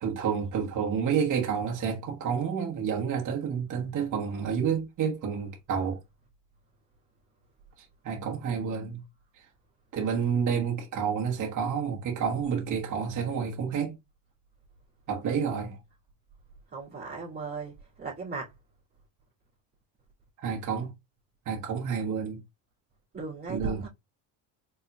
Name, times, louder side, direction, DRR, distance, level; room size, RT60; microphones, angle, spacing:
voice 1, 0.0-6.0 8.0-9.0 9.9-13.9 15.1-15.8 20.4-20.9 21.5-22.4 23.5-23.8, right 7 dB, 40° right, 1.2 m, -29 dB
voice 2, 16.7-18.5 23.1-23.9, right 4 dB, 20° right, 2.2 m, -37 dB
4.3 x 4.2 x 2.3 m
supercardioid pair, 100°, 45 cm